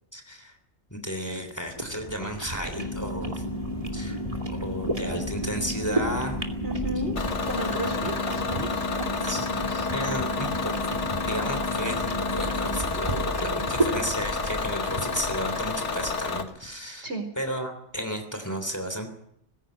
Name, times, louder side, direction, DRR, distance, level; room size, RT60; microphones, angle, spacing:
voice 1, 0.1-0.5 0.9-3.4 3.9-4.2 4.5-6.4 7.0-7.1 9.2-17.1 17.4-19.1, equal, 15° left, 6 dB, 3.2 m, -33 dB
sound 1, 1.4-16.7, right 2 dB, 30° right, 2.6 m, -34 dB
sound 2, 2.8-12.8, left 2 dB, 35° left, 1.5 m, -35 dB
voice 2, 6.6-7.1 7.4-8.8 17.0-17.3, right 1 dB, 70° right, 5 dB, 4.7 m, -33 dB
Bus / Engine, 7.2-16.4, left 4 dB, 75° left, 1.9 m, -30 dB
20.0 x 16.0 x 9.0 m, 0.77 s
omnidirectional pair, 1.2 m